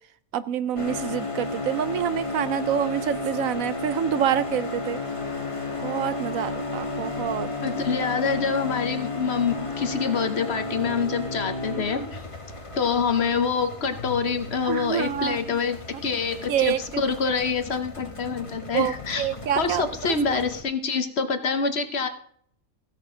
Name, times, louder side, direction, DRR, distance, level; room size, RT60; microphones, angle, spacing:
voice 1, 0.3-5.0 5.8-7.5 14.6-15.6 16.5-17.0 18.7-20.4, right 9 dB, 75° right, 14 dB, 1.0 m, -27 dB
sound 1, 0.8-20.6, left 3 dB, 25° left, 1.3 m, -33 dB
voice 2, 7.6-12.2 12.7-15.8 16.0-19.3 19.6-22.1, left 5 dB, 50° left, 8 dB, 1.1 m, -26 dB
Keyboard (musical), 14.0-17.1, left 5 dB, 80° left, 1.3 m, -44 dB
15.5 x 6.5 x 4.9 m, 0.64 s
omnidirectional pair, 1.5 m